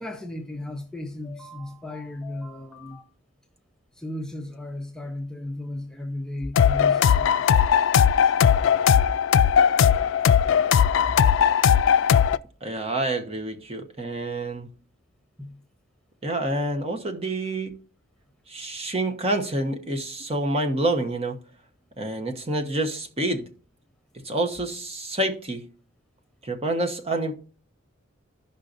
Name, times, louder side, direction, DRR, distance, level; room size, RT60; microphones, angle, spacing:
voice 1, 0.0-3.0 4.0-7.7 8.2-8.3 15.4-15.6, left 1 dB, 5° left, 0.7 m, -35 dB
sound 1, 6.6-12.4, left 8 dB, 70° left, 0.3 m, -18 dB
voice 2, 12.6-14.7 16.2-17.7 18.5-21.4 22.0-23.4 24.2-25.6 26.4-27.4, right 1 dB, 30° right, 1.1 m, -27 dB
14.5 x 5.5 x 2.6 m
head